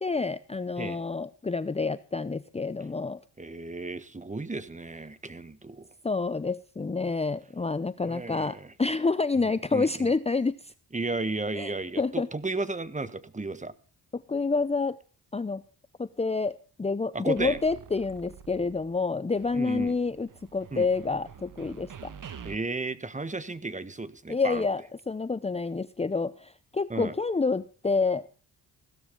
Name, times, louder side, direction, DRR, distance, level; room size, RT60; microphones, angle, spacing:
voice 1, 0.0-3.2 6.0-10.7 11.6-12.3 14.1-15.0 15.3-15.6 16.0-22.1 24.3-28.3, left 4 dB, 15° left, 14 dB, 0.7 m, -28 dB
voice 2, 3.4-5.9 8.1-8.7 9.4-10.1 10.9-13.7 17.1-17.6 19.5-19.9 20.7-20.9 22.4-24.6 26.9-27.1, right 3 dB, 20° right, 15 dB, 1.5 m, -34 dB
sound 1, 17.4-19.0 19.3-22.5, right 7 dB, 55° right, 1.7 m, -47 dB
16.5 x 13.0 x 3.8 m, 0.37 s
cardioid pair, 75°, 37 cm